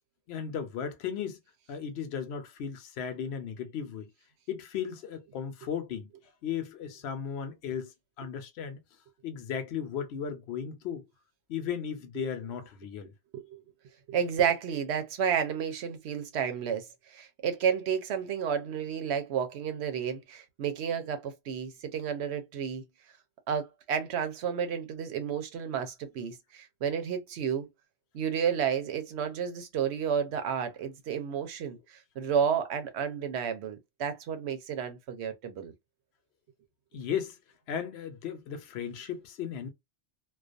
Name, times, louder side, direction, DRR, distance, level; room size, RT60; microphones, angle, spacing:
voice 1, 0.3-1.4 1.7-4.1 4.5-6.1 6.4-8.8 9.2-11.0 11.5-13.1 36.9-37.4 37.7-39.7, left 8 dB, 70° left, 0.8 m, -36 dB
voice 2, 14.1-22.8 23.5-27.7 28.1-35.7, right 7 dB, 75° right, 0.9 m, -31 dB
2.3 x 2.2 x 2.5 m
omnidirectional pair, 1.2 m